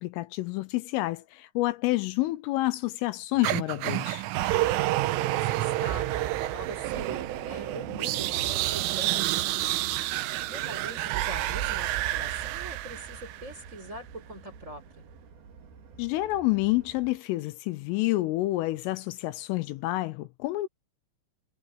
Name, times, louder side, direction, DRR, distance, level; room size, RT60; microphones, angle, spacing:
voice 1, 0.0-4.2 16.0-20.7, left 19 dB, 80° left, 3.3 m, -28 dB
sound 1, 3.4-13.6, right 16 dB, 80° right, 3.4 m, -29 dB
voice 2, 4.8-14.8, right 1 dB, 15° right, 4.5 m, -42 dB
sound 2, 6.6-17.2, right 5 dB, 55° right, 4.1 m, -50 dB
omnidirectional pair, 5.9 m